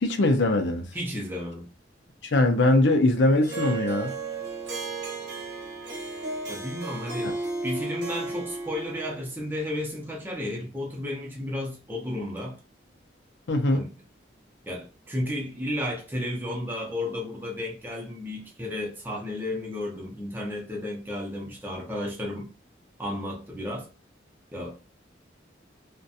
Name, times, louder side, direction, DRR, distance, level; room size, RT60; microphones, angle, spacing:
voice 1, 0.0-0.9 2.2-4.1 7.2-7.3 13.5-13.9, left 2 dB, 75° left, 0.5 m, -22 dB
voice 2, 0.9-1.7 6.5-7.3 7.6-12.6 13.7-13.9 14.7-22.5 23.0-23.9 24.5-24.8, left 1 dB, 10° right, 0.6 m, -33 dB
Harp, 3.4-9.2, right 3 dB, 70° right, 0.8 m, -34 dB
2.4 x 2.2 x 2.6 m
head